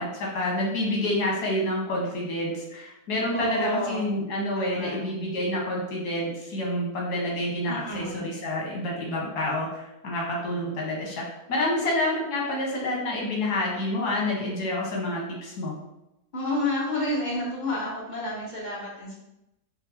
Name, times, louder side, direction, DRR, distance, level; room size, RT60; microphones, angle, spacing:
voice 1, 0.0-15.7, left 1 dB, 85° left, -3 dB, 1.5 m, -28 dB
voice 2, 3.3-4.0 4.5-5.0 7.7-8.2 16.3-19.1, left 1 dB, 35° left, -5 dB, 0.9 m, -30 dB
4.5 x 2.0 x 2.9 m, 0.88 s
omnidirectional pair, 1.7 m